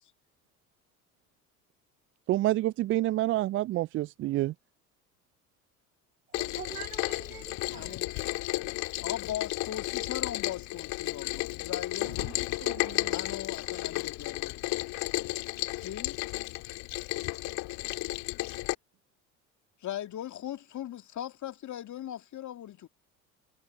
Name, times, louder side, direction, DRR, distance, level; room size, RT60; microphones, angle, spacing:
voice 1, 2.3-4.5, right 15 dB, 30° right, 0.4 m, -27 dB
Rain, 6.3-18.8, left 22 dB, 60° left, 2.2 m, -33 dB
voice 2, 6.3-8.5 12.0-13.8, right 9 dB, 85° right, 2.9 m, -46 dB
voice 3, 7.3-8.2 9.0-14.7 15.7-16.2 19.8-22.9, left 11 dB, 45° left, 2.2 m, -39 dB
hypercardioid pair, 65°, 42 cm